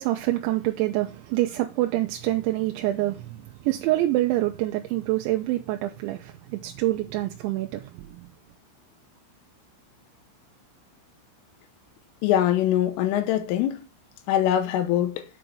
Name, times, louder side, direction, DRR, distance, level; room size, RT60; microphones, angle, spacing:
voice 1, 0.0-8.3, right 16 dB, 80° right, 2.8 m, -26 dB
voice 2, 12.2-13.8 14.3-15.2, left 11 dB, 85° left, 3.4 m, -23 dB
8.1 x 5.1 x 6.1 m
omnidirectional pair, 5.8 m